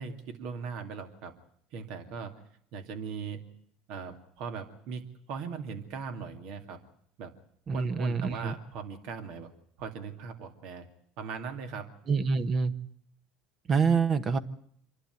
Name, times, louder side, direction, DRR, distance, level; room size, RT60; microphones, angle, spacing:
voice 1, 0.0-1.3 1.7-2.3 2.7-3.4 3.9-6.8 7.2-7.3 7.7-9.5 9.8-10.9 11.2-11.9, right 5 dB, 65° right, 6 dB, 2.5 m, -39 dB
voice 2, 7.7-8.5 12.1-12.7 13.7-14.4, right 5 dB, 40° right, 11 dB, 1.1 m, -26 dB
26.5 x 11.5 x 9.2 m, 0.66 s
supercardioid pair, 100°, 0 cm